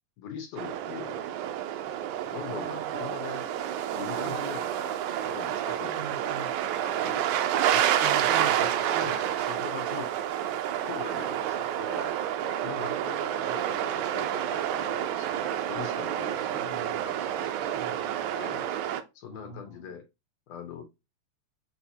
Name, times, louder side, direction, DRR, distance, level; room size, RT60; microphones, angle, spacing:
voice 1, 0.2-1.2 2.3-3.4 3.9-6.2 6.8-8.1 8.4-8.5 9.0-10.1 10.8-12.2 12.6-16.8 17.0-17.8 18.3-18.7 19.2-20.0 20.5-20.8, left 8 dB, 70° left, 2.0 m, -42 dB
sound 1, 0.6-19.0, right 11 dB, 85° right, 2.0 m, -29 dB
voice 2, 2.5-3.3 4.2-4.4 6.0-6.5 8.0-9.2 12.7-13.0 16.5-17.1 17.8-18.3 19.3-20.0, right 4 dB, 65° right, 1.2 m, -42 dB
6.4 x 2.9 x 2.7 m
omnidirectional pair, 3.4 m